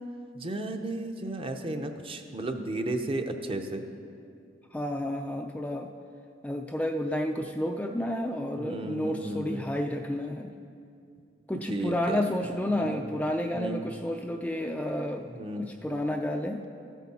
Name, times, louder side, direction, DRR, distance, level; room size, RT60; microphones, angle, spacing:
voice 1, 0.3-3.8 8.5-9.7 11.7-12.3 12.7-13.0 13.5-13.8 15.3-15.7, right 2 dB, 30° right, 6 dB, 0.7 m, -34 dB
voice 2, 4.7-5.9 6.4-10.5 11.5-15.2 15.6-16.6, left 1 dB, 10° left, 3 dB, 0.3 m, -30 dB
14.0 x 8.3 x 4.2 m, 2.4 s
head